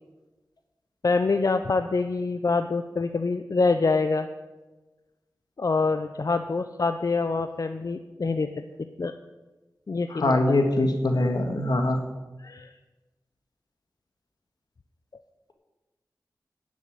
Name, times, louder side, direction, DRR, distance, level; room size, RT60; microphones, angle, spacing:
voice 1, 1.0-4.3 5.6-8.5 9.0-9.1 9.9-10.6 12.4-12.7, left 3 dB, 55° left, 9 dB, 0.6 m, -25 dB
voice 2, 10.1-12.0, left 2 dB, 75° left, 5 dB, 1.7 m, -23 dB
10.0 x 7.2 x 9.3 m, 1.2 s
wide cardioid pair, 60°, 7 cm